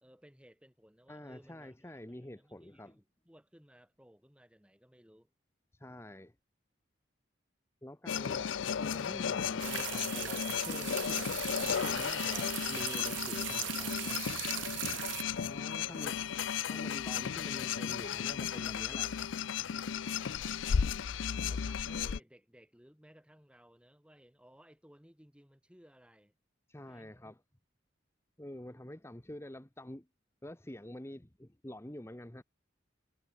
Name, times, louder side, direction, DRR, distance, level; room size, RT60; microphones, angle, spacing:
voice 1, 0.0-1.8 2.1-5.3 19.9-21.0 21.4-26.3 26.8-27.1, equal, 5° right, 2.4 m, -60 dB
voice 2, 1.1-2.9 5.7-6.3 7.8-14.7 15.3-16.2 16.6-19.1 26.7-27.4 28.4-30.1 30.4-32.4, left 1 dB, 15° left, 1.0 m, -47 dB
sound 1, 8.1-22.2, left 7 dB, 85° left, 0.5 m, -34 dB
sound 2, 9.6-15.2, right 16 dB, 80° right, 0.4 m, -39 dB
head